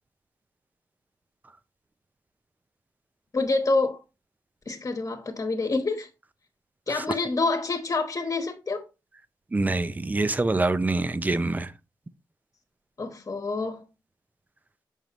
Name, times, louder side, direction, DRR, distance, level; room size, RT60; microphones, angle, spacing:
voice 1, 3.3-4.0 4.7-6.1 6.9-8.8 13.0-13.9, left 3 dB, 40° left, 1.2 m, -27 dB
voice 2, 9.5-11.7, right 2 dB, 20° right, 0.5 m, -25 dB
7.3 x 5.2 x 3.0 m
wide cardioid pair, 125°, 8 cm